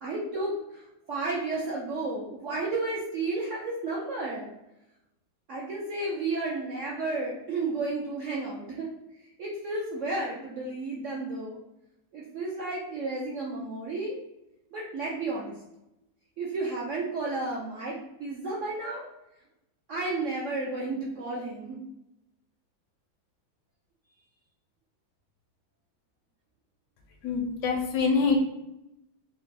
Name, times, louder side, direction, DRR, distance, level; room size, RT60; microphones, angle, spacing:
voice 1, 0.0-4.5 5.5-8.9 9.4-11.6 12.1-14.2 14.7-15.5 16.4-19.1 19.9-21.8, right 3 dB, 80° right, -4 dB, 0.6 m, -32 dB
voice 2, 27.2-28.4, left 4 dB, 80° left, 2 dB, 0.6 m, -25 dB
4.4 x 2.1 x 4.0 m, 0.89 s
omnidirectional pair, 2.1 m